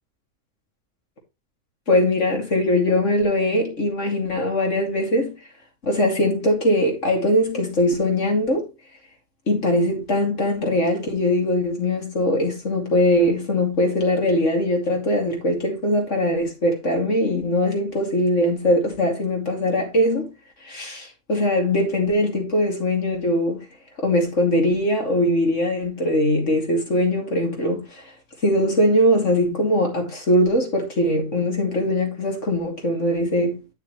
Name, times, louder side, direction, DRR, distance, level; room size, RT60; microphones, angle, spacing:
voice 1, 1.9-5.4 5.8-8.7 9.5-20.3 20.6-23.7 24.0-28.0 28.4-33.6, left 1 dB, 60° left, 2.8 m, -21 dB
9.6 x 6.5 x 3.1 m
omnidirectional pair, 1.4 m